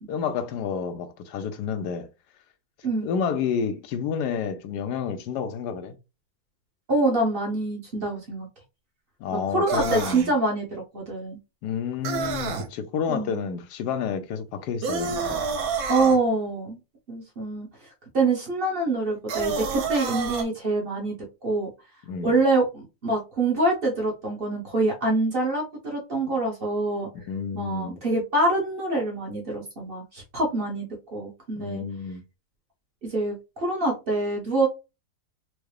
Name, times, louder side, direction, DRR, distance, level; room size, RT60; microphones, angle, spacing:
voice 1, 0.1-2.1 3.0-6.0 9.2-10.3 11.6-15.4 22.1-22.4 27.1-28.0 31.6-32.2, left 7 dB, 85° left, 1.2 m, -30 dB
voice 2, 6.9-8.5 9.3-11.4 13.1-13.4 15.9-16.8 17.1-17.7 18.1-21.2 21.4-21.7 22.2-27.1 27.5-30.9 31.1-31.8 33.0-34.7, right 2 dB, 40° right, 1.0 m, -25 dB
sound 1, 9.7-10.3 12.0-12.7 14.8-16.2 19.3-20.4, right 5 dB, 65° right, 1.1 m, -28 dB
4.6 x 2.1 x 3.2 m
omnidirectional pair, 1.7 m